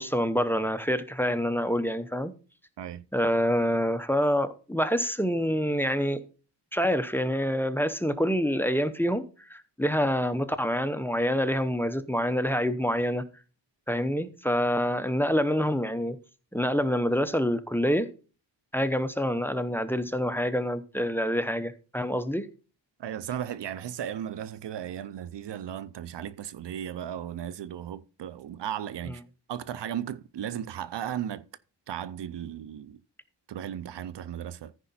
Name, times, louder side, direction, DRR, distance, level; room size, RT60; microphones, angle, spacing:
voice 1, 0.0-2.3 3.1-6.2 6.7-9.2 9.5-13.2 13.9-16.2 16.5-18.1 18.7-22.5 29.1-29.2, equal, 5° left, 0.8 m, -26 dB
voice 2, 23.0-29.2 29.5-31.4 31.9-33.0 33.5-34.7, right 10 dB, 70° right, 0.6 m, -35 dB
14.0 x 5.0 x 4.2 m
wide cardioid pair, 85°, 44 cm